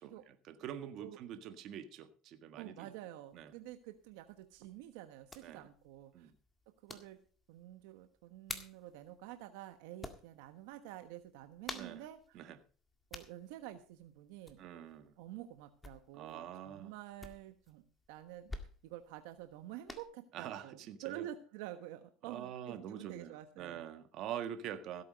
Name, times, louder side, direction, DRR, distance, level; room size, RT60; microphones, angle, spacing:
voice 1, 0.0-2.9 3.3-3.5 5.4-5.7 6.1-6.3 11.7-12.0 12.3-12.6 14.6-15.1 16.1-16.9 20.3-21.2 22.3-25.0, right 10 dB, 55° right, 9 dB, 1.6 m, -45 dB
voice 2, 2.6-6.3 6.8-7.2 7.5-12.4 13.1-14.6 15.2-17.8 18.1-18.5 18.8-23.8, right 13 dB, 75° right, 8 dB, 1.2 m, -49 dB
sound 1, 3.3-20.0, left 2 dB, 15° left, 1.8 m, -53 dB
16.0 x 8.5 x 5.2 m, 0.40 s
supercardioid pair, 115°, 0 cm